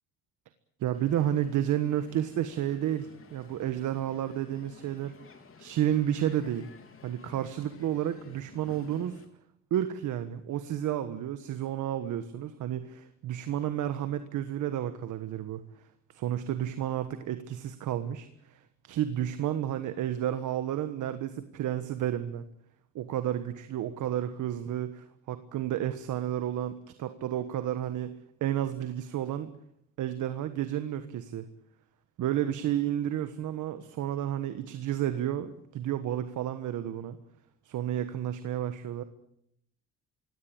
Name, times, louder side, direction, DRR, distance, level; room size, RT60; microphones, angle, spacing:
voice 1, 0.8-5.1 5.6-6.7 7.0-9.2 9.7-15.6 16.1-22.4 22.9-28.1 28.4-29.5 30.0-31.5 32.2-37.2 37.6-39.0, right 11 dB, 80° right, 10 dB, 1.5 m, -31 dB
Crowd, 0.9-9.3, left 5 dB, 45° left, 3.6 m, -53 dB
23.5 x 17.5 x 8.9 m, 0.74 s
cardioid pair, 90°, 30 cm